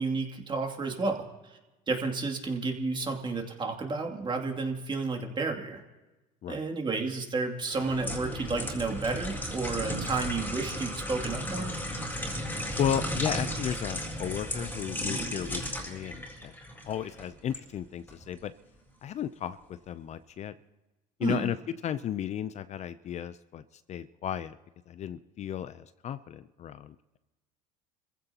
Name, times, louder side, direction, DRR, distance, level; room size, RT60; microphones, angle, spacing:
voice 1, 0.0-1.6 1.9-5.8 6.5-11.7 21.2-21.5, right 3 dB, 30° right, 2 dB, 2.6 m, -31 dB
sound 1, 7.7-17.6 18.1-18.3, equal, 10° left, 4.0 m, -35 dB
voice 2, 12.8-16.5 16.8-18.5 19.0-20.5 21.2-21.6 21.8-23.6 23.9-24.6 24.9-27.2, left 10 dB, 40° left, 13 dB, 0.5 m, -34 dB
26.5 x 15.5 x 2.9 m, 1.1 s
supercardioid pair, 95°, 17 cm